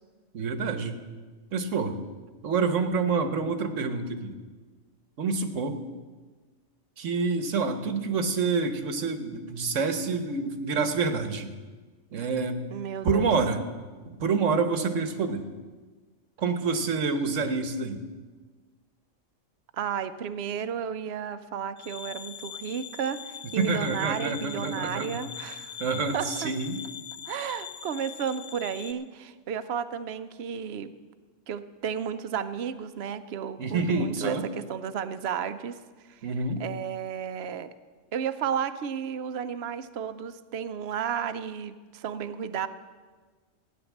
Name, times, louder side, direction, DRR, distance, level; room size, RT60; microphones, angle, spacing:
voice 1, 0.3-1.0 1.5-2.0 2.4-4.3 5.2-5.8 7.0-11.5 12.1-12.6 13.0-13.6 14.0-15.4 16.4-18.0 23.6-25.2 25.8-26.8 33.6-34.5 36.2-36.6, right 4 dB, 80° right, 8 dB, 1.5 m, -27 dB
voice 2, 12.7-13.3 19.7-25.8 26.1-26.5 27.3-30.9 31.5-35.8 36.1-36.2 36.6-37.7 38.1-42.7, right 8 dB, 60° right, 11 dB, 0.9 m, -33 dB
sound 1, 21.8-28.9, left 8 dB, 50° left, 0.8 m, -42 dB
15.5 x 9.7 x 7.2 m, 1.4 s
omnidirectional pair, 1.3 m